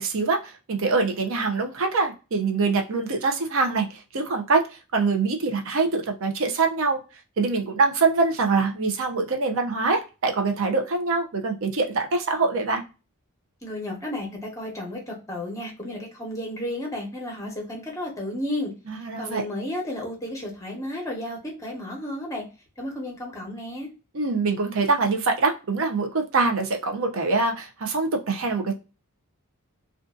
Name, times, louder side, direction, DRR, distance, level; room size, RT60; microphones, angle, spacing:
voice 1, 0.0-4.6 4.9-7.0 7.4-12.8 18.9-19.5 24.1-28.8, right 4 dB, 60° right, 4 dB, 0.6 m, -24 dB
voice 2, 13.6-18.7 19.2-22.4 22.8-23.9, left 1 dB, 15° left, 0 dB, 0.9 m, -32 dB
2.5 x 2.4 x 2.3 m, 0.31 s
head